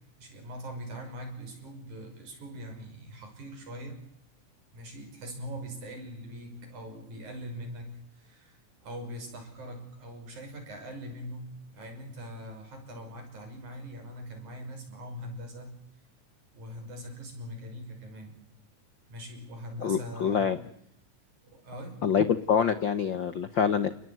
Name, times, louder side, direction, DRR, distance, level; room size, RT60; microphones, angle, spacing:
voice 1, 0.2-4.0 4.7-15.7 16.5-18.4 19.1-20.5 21.4-22.0, equal, 60° right, 5 dB, 7.3 m, -42 dB
voice 2, 19.8-20.6 22.0-23.9, left 7 dB, 65° left, 12 dB, 1.1 m, -26 dB
29.5 x 20.0 x 9.4 m, 0.75 s
omnidirectional pair, 3.8 m